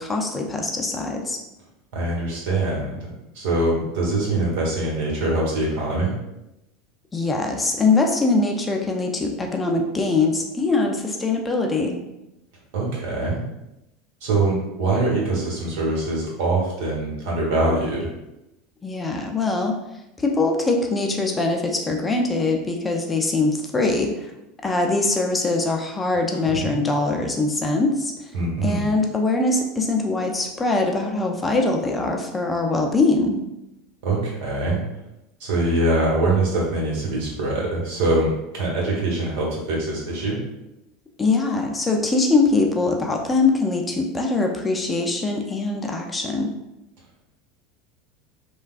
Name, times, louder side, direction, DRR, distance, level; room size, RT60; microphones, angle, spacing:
voice 1, 0.0-1.4 7.1-12.0 18.8-19.7 20.2-24.3 24.6-28.3 28.6-33.4 41.2-46.5, left 3 dB, 15° left, 1 dB, 0.4 m, -22 dB
voice 2, 1.9-3.1 3.3-6.1 12.7-13.4 14.2-18.1 26.4-26.7 28.3-28.9 34.0-34.8 35.4-40.4, right 2 dB, 65° right, -3 dB, 1.1 m, -23 dB
3.3 x 2.2 x 2.4 m, 0.91 s
hypercardioid pair, 85°, 0 cm